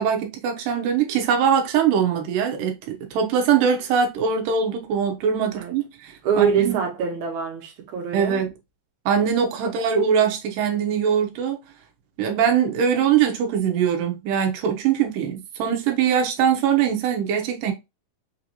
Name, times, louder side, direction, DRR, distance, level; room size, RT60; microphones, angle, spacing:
voice 1, 0.0-6.8 8.1-8.5 9.1-11.6 12.2-17.7, right 7 dB, 85° right, 2.4 m, -22 dB
voice 2, 6.2-8.4 9.6-9.7, right 7 dB, 65° right, 2.3 m, -24 dB
5.4 x 2.6 x 2.8 m
omnidirectional pair, 3.8 m